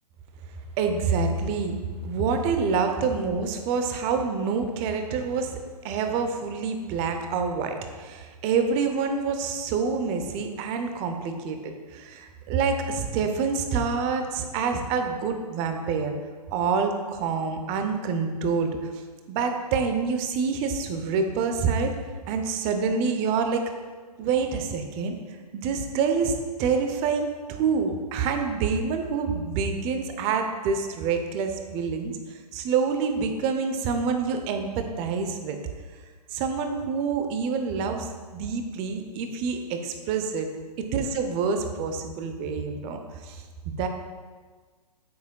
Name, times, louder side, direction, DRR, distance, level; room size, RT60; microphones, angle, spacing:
voice 1, 0.8-1.7 2.0-5.6 5.8-16.1 16.5-18.8 19.3-22.0 22.3-23.6 24.2-25.1 25.5-26.3 26.6-32.1 32.5-35.6 36.3-38.1 38.3-40.5 40.8-43.9, right 5 dB, 25° right, 6 dB, 0.7 m, -27 dB
9.1 x 7.2 x 2.3 m, 1.5 s
hypercardioid pair, 130°, 21 cm